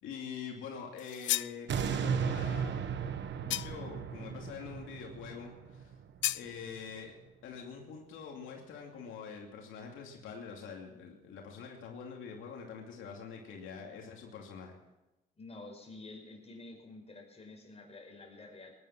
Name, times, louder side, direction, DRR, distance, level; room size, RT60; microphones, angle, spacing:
voice 1, 0.0-2.8 3.4-5.9 6.3-7.1 7.4-14.7, left 6 dB, 85° left, 0 dB, 2.6 m, -45 dB
sound 1, 1.0-1.6 3.5-3.9 6.2-6.5, left 15 dB, 70° left, 0.4 m, -33 dB
sound 2, 1.7-6.8 7.3-7.4, right 7 dB, 65° right, 1.3 m, -36 dB
voice 2, 15.4-18.7, left 2 dB, 30° left, 1 dB, 5.6 m, -49 dB
19.0 x 11.0 x 6.0 m, 1.0 s
cardioid pair, 90°, 20 cm